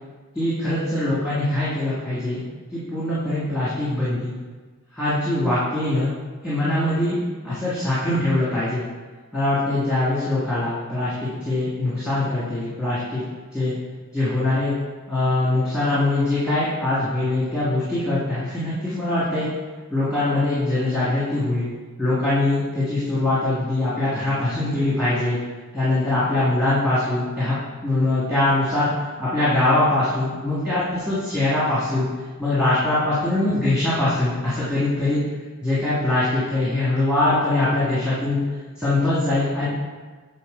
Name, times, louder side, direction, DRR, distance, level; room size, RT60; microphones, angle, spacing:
voice 1, 0.3-2.4 2.7-4.3 5.0-6.1 6.4-7.2 7.4-8.8 9.3-13.2 13.5-13.7 14.1-14.7 15.1-19.5 19.9-21.7 22.0-25.4 25.7-27.6 27.8-28.9 29.2-32.1 32.4-35.2 35.6-38.4 38.8-39.7, left 2 dB, 5° right, -11 dB, 1.6 m, -22 dB
7.6 x 3.6 x 4.9 m, 1.4 s
head